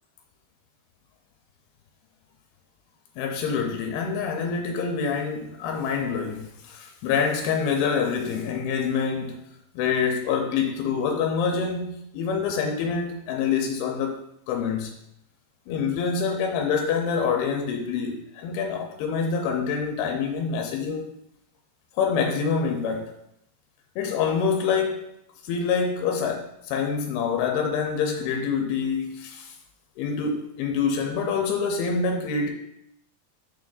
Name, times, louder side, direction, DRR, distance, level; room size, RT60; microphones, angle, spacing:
voice 1, 3.2-9.4 9.8-14.2 14.5-14.9 15.7-21.1 22.0-23.1 24.0-25.0 25.4-29.5 30.0-32.5, left 6 dB, 90° left, 2 dB, 2.6 m, -26 dB
6.7 x 5.9 x 2.5 m, 0.79 s
omnidirectional pair, 4.5 m